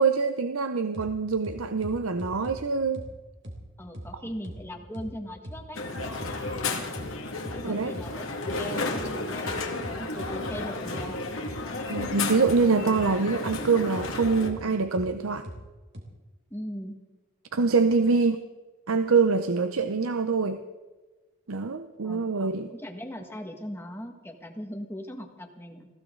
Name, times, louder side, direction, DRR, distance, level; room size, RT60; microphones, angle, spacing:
voice 1, 0.0-3.0 7.6-7.9 11.9-15.5 17.5-18.4 18.9-20.6 21.5-22.7, right 4 dB, 90° right, 9 dB, 0.8 m, -24 dB
sound 1, 0.9-1.1 1.4-2.6 2.9-3.1 3.4-3.6 3.9-4.1 4.4-4.6 4.9-5.1 5.4-5.6 5.9-6.6 6.9-7.1 7.4-7.6 7.9-8.1 8.4-8.6 8.9-9.1 9.4-10.6 10.9-11.1 11.4-11.6 11.9-12.1 12.4-12.6 12.9-13.1 13.4-13.6 13.9-14.6 14.9-15.1 15.4-15.6 15.9-16.0, equal, 55° right, 3.4 m, -39 dB
voice 2, 3.8-5.8 7.5-11.2 16.5-16.9 22.0-22.2 22.7-25.9, equal, 10° left, 4 dB, 1.8 m, -39 dB
Crowd, 5.7-14.5, left 3 dB, 85° left, 2.2 m, -33 dB
21.0 x 16.0 x 3.9 m, 1.2 s
head